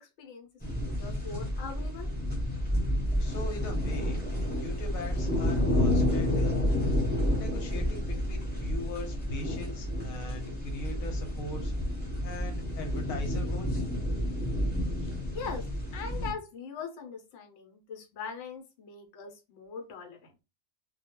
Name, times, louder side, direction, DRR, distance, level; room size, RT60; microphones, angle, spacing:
voice 1, 0.0-0.5 0.7-2.1 15.3-15.7 15.9-20.3, left 5 dB, 70° left, 3 dB, 1.0 m, -41 dB
sound 1, 0.6-16.3, left 1 dB, 10° left, 0.8 m, -30 dB
voice 2, 3.2-7.0 7.3-11.7 12.2-13.8 15.0-15.1, left 1 dB, 85° left, 4 dB, 1.1 m, -41 dB
2.3 x 2.2 x 2.8 m, 0.28 s
omnidirectional pair, 1.4 m